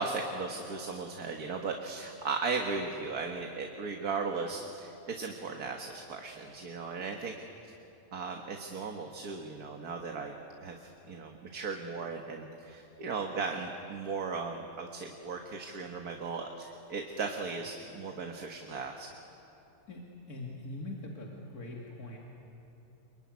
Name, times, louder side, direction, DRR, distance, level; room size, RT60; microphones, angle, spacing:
voice 1, 0.0-7.4 7.6-7.7 8.1-10.4 10.6-19.1, right 4 dB, 90° right, 3 dB, 2.1 m, -37 dB
voice 2, 19.9-22.2, left 2 dB, 90° left, -2 dB, 3.1 m, -42 dB
26.0 x 23.0 x 9.7 m, 3.0 s
omnidirectional pair, 1.6 m